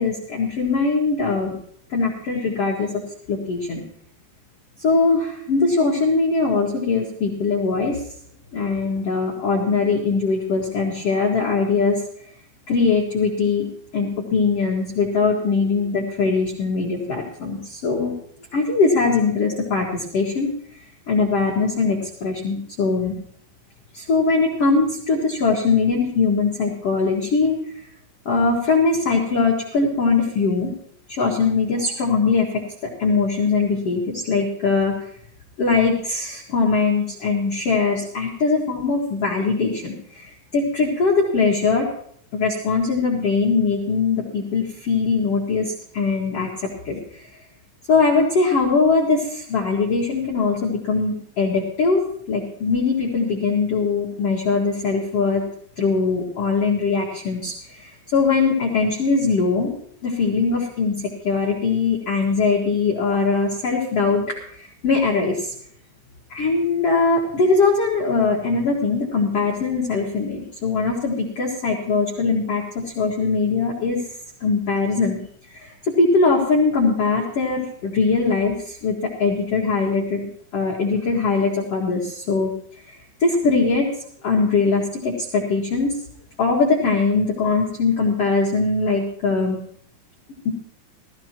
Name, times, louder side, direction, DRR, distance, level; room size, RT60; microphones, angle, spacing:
voice 1, 0.0-1.5 1.9-3.0 3.3-3.8 4.8-8.0 8.5-12.0 12.7-13.7 13.9-18.1 18.5-20.5 21.1-23.1 23.9-27.8 28.2-30.7 31.1-34.9 35.6-41.9 42.3-47.2 47.9-55.4 55.8-59.8 60.0-64.2 64.5-65.5 66.3-74.0 74.4-75.2 75.5-80.3 80.5-82.5 83.2-83.9 84.2-86.0 86.4-89.6 90.4-90.5, left 4 dB, 80° left, -2 dB, 1.3 m, -21 dB
18.0 x 14.0 x 3.0 m, 0.66 s
omnidirectional pair, 5.9 m